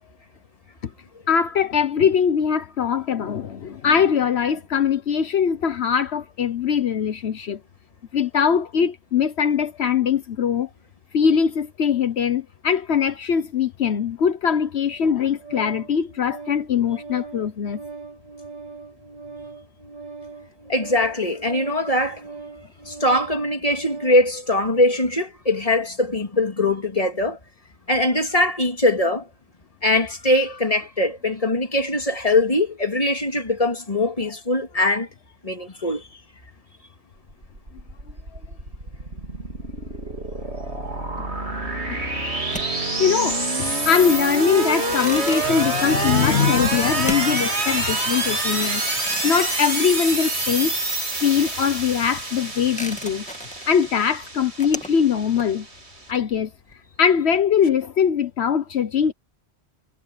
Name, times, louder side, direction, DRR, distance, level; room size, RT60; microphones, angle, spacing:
voice 1, 1.3-7.6 8.1-10.7 11.1-17.8 43.0-43.6 43.8-48.8 49.2-50.7 51.2-53.2 53.7-55.7 56.1-56.5 57.0-59.1, left 7 dB, 75° left, 1.2 m, -21 dB
Organ, 14.9-24.3, right 4 dB, 40° right, 5.6 m, -40 dB
voice 2, 20.7-22.2 22.9-27.4 27.9-29.3 29.8-35.1 35.4-36.1, left 1 dB, 35° left, 2.9 m, -21 dB
sound 1, 37.3-56.0, right 2 dB, 90° right, 4.1 m, -27 dB
sound 2, 42.5-50.7 50.9-56.7, equal, 5° left, 2.2 m, -39 dB
omnidirectional pair, 1.1 m